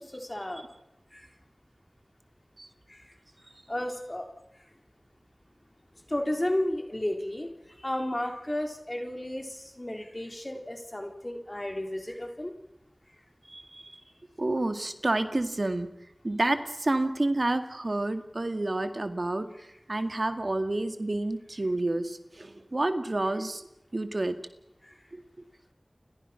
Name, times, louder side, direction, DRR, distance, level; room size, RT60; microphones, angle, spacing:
voice 1, 0.1-0.7 1.1-1.3 2.9-3.1 3.7-4.3 4.6-4.7 6.1-12.5 24.8-25.0, left 1 dB, 35° left, 3 dB, 3.8 m, -33 dB
voice 2, 13.5-13.9 14.4-15.9 16.2-19.5 19.9-23.7 23.9-24.4 25.1-25.2, right 2 dB, 60° right, 8 dB, 2.0 m, -29 dB
30.0 x 23.5 x 5.9 m, 0.87 s
wide cardioid pair, 45°, 0 cm